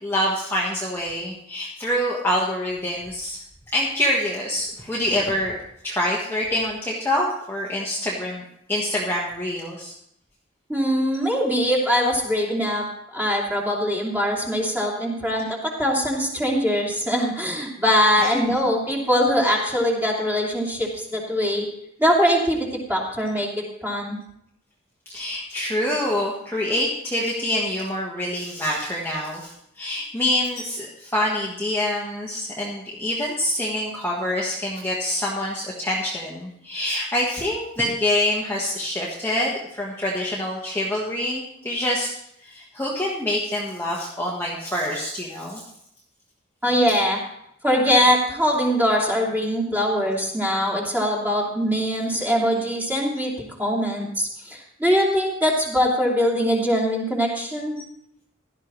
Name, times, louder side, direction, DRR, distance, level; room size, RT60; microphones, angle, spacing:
voice 1, 0.0-3.4 3.7-5.5 5.8-9.9 18.2-18.6 25.1-42.1 42.4-45.6, left 1 dB, 10° left, -4 dB, 1.4 m, -26 dB
voice 2, 10.7-12.9 13.1-21.7 22.0-24.2 46.6-47.2 47.6-57.8, equal, 10° right, -3 dB, 3.0 m, -22 dB
16.5 x 12.5 x 3.1 m, 0.75 s
head